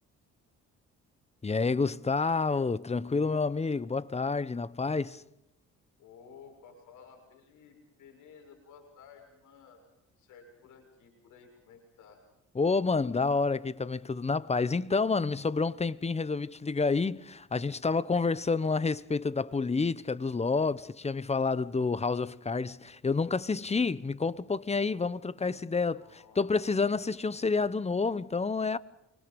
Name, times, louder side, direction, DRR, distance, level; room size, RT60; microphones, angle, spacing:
voice 1, 1.4-5.2 12.5-26.0 26.4-28.8, left 4 dB, 20° left, 1.0 m, -29 dB
voice 2, 6.0-9.9 10.2-12.2 25.9-26.6, left 6 dB, 85° left, 6.8 m, -55 dB
27.5 x 25.5 x 5.4 m
cardioid pair, 90°, 30 cm